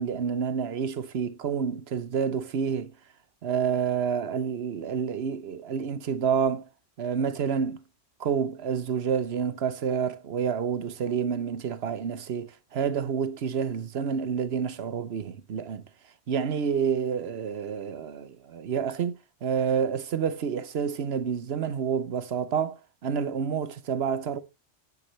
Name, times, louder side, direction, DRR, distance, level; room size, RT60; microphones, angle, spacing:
voice 1, 0.0-2.9 3.4-6.6 7.0-7.8 8.2-15.8 16.3-19.1 19.4-24.4, right 7 dB, 60° right, 1.0 m, -28 dB
9.7 x 9.6 x 3.2 m
omnidirectional pair, 1.2 m